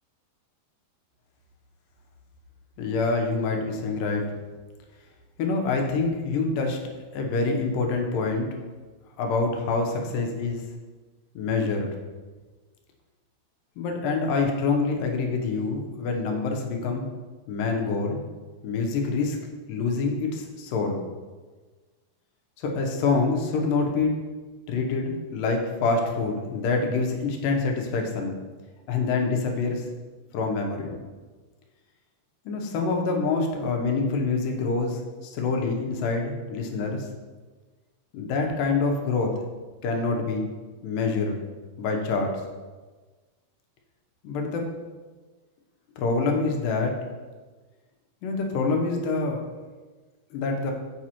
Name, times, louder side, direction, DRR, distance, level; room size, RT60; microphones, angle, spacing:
voice 1, 2.8-4.3 5.4-6.8 7.1-8.6 9.2-10.6 11.4-11.9 13.8-17.1 17.5-18.3 18.6-19.4 19.7-21.0 22.6-24.1 24.7-28.4 28.9-29.9 30.3-31.0 32.5-37.1 38.1-39.3 39.8-40.5 40.8-41.4 41.8-42.4 44.2-44.6 46.0-46.9 48.2-49.4 50.3-50.7, left 4 dB, 85° left, 2 dB, 2.5 m, -26 dB
7.1 x 6.2 x 2.9 m, 1.3 s
omnidirectional pair, 3.9 m